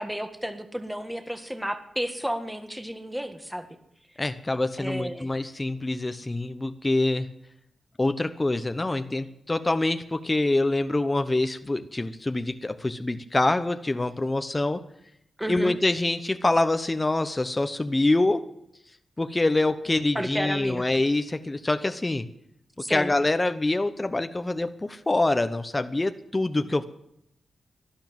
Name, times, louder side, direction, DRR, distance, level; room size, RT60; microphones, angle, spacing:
voice 1, 0.0-3.7 4.8-5.3 8.9-9.0 15.4-15.7 20.2-20.9 22.8-23.1, equal, 5° right, 7 dB, 1.7 m, -32 dB
voice 2, 4.2-7.3 8.0-14.8 15.5-18.5 19.2-22.3 22.9-26.8, left 2 dB, 25° left, 9 dB, 0.9 m, -25 dB
12.0 x 11.5 x 8.9 m, 0.76 s
cardioid pair, 65°, 0 cm